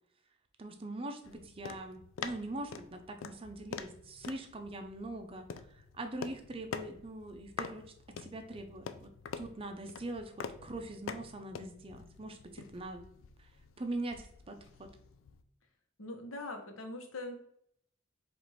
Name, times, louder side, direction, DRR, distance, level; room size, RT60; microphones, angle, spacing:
voice 1, 0.6-13.0 13.4-13.5 13.8-14.9, right 2 dB, 30° right, 6 dB, 0.5 m, -42 dB
sound 1, 1.2-15.4, left 6 dB, 70° left, 0.3 m, -46 dB
voice 2, 16.0-17.3, left 2 dB, 90° left, 4 dB, 0.9 m, -42 dB
4.7 x 2.5 x 4.1 m, 0.69 s
head